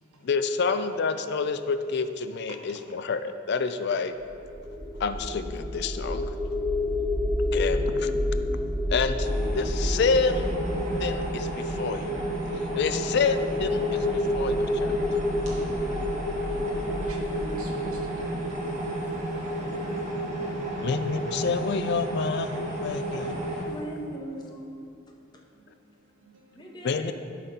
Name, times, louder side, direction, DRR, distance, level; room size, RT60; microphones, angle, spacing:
voice 1, 0.2-4.1 5.0-6.4 7.5-8.1 8.9-10.6 11.0-12.3 12.8-15.0 20.8-23.3 26.8-27.1, left 5 dB, 50° left, 0.3 m, -28 dB
sound 1, 4.2-19.3, left 1 dB, 10° right, 0.5 m, -30 dB
voice 2, 7.6-8.0 16.9-18.4 22.8-23.8 27.1-27.2, right 1 dB, 85° right, 1.1 m, -43 dB
sound 2, 9.2-23.6, right 1 dB, 30° right, 1.6 m, -32 dB
voice 3, 19.8-20.9 25.5-26.9, right 5 dB, 65° right, 1.5 m, -55 dB
voice 4, 23.6-24.9 26.5-27.1, right 1 dB, 20° left, 0.7 m, -39 dB
12.0 x 4.0 x 5.6 m
head